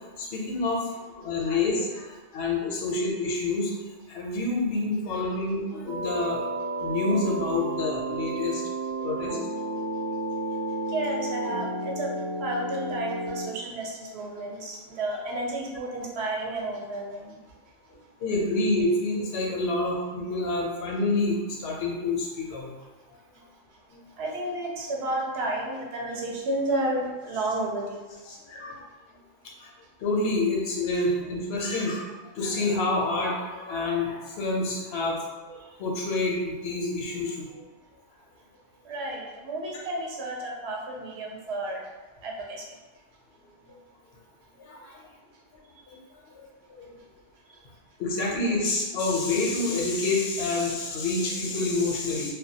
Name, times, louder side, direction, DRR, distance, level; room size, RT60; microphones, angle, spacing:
voice 1, 0.2-3.7 4.1-6.5 6.8-8.6 8.9-9.4 18.2-22.7 23.9-24.0 28.3-28.8 29.6-29.7 30.0-32.1 32.3-35.5 35.8-37.6 44.6-45.0 46.7-46.9 48.0-52.3, left 2 dB, 90° left, -2 dB, 0.9 m, -28 dB
sound 1, 5.9-13.5, right 2 dB, 55° right, 0.6 m, -32 dB
voice 2, 10.9-11.7 12.0-12.1 12.4-17.2 24.2-28.0 38.9-41.8 42.2-42.3, right 1 dB, 90° right, -1 dB, 0.9 m, -31 dB
2.2 x 2.2 x 2.7 m, 1.2 s
omnidirectional pair, 1.0 m